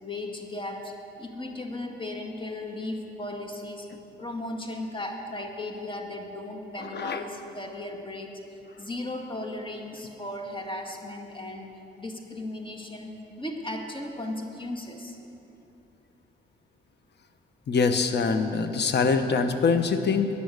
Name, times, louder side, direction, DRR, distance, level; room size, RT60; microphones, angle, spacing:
voice 1, 0.0-0.9 1.2-3.9 4.2-8.4 8.8-11.7 12.0-13.1 13.4-15.2, left 1 dB, 25° left, 2 dB, 1.9 m, -36 dB
voice 2, 6.8-7.2 17.7-20.3, left 5 dB, 55° left, 8 dB, 1.1 m, -24 dB
16.0 x 10.0 x 6.7 m, 2.9 s
cardioid pair, 70°, 20 cm